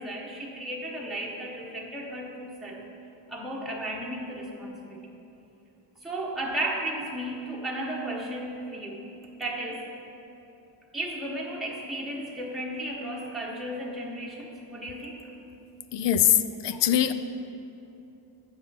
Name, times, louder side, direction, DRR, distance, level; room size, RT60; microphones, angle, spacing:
voice 1, 0.0-2.8 3.3-5.0 6.0-9.0 9.4-9.8 10.9-15.2, right 1 dB, ahead, -4 dB, 1.0 m, -34 dB
voice 2, 15.9-16.4 16.6-17.1, left 11 dB, 65° left, 11 dB, 0.5 m, -21 dB
8.0 x 5.8 x 5.4 m, 2.9 s
cardioid pair, 105°, 46 cm